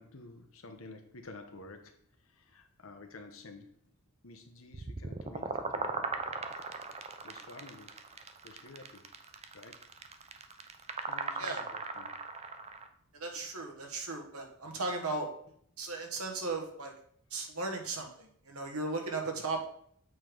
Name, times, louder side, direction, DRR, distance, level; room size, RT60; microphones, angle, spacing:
voice 1, 0.0-3.7 4.2-6.1 7.2-8.0 8.4-9.2 9.5-9.8 11.0-12.1, left 3 dB, 70° left, 6 dB, 1.0 m, -51 dB
sound 1, 4.7-12.9, right 4 dB, 30° right, 0.5 m, -38 dB
voice 2, 13.1-15.3 15.8-16.9 17.3-19.7, right 3 dB, 90° right, 2 dB, 1.5 m, -36 dB
7.6 x 5.2 x 3.8 m, 0.63 s
head